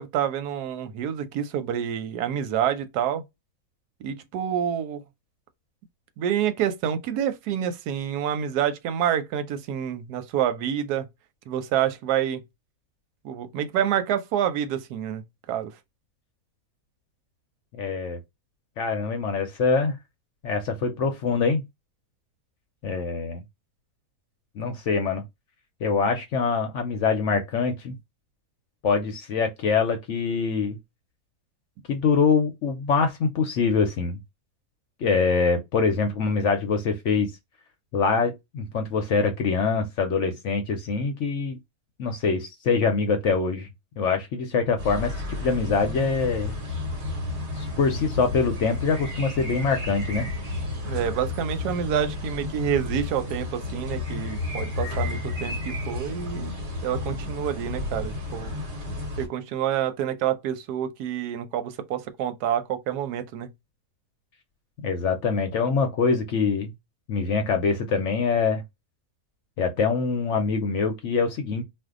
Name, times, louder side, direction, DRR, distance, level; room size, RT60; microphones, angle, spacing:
voice 1, 0.0-3.2 4.0-5.0 6.2-11.1 11.5-12.4 13.2-15.7 50.8-56.5 56.8-58.5 59.2-63.5, right 9 dB, 85° right, 1.2 m, -28 dB
voice 2, 17.7-18.2 18.8-20.0 20.4-21.6 22.8-23.4 24.6-25.2 25.8-28.0 28.8-30.8 31.9-34.2 35.0-37.3 37.9-41.6 42.0-43.7 44.0-46.6 47.6-50.3 64.8-66.7 67.1-68.6 69.6-71.6, left 5 dB, 65° left, 0.8 m, -24 dB
sound 1, 44.8-59.3, left 2 dB, 50° right, 1.2 m, -32 dB
2.6 x 2.2 x 3.6 m
omnidirectional pair, 1.6 m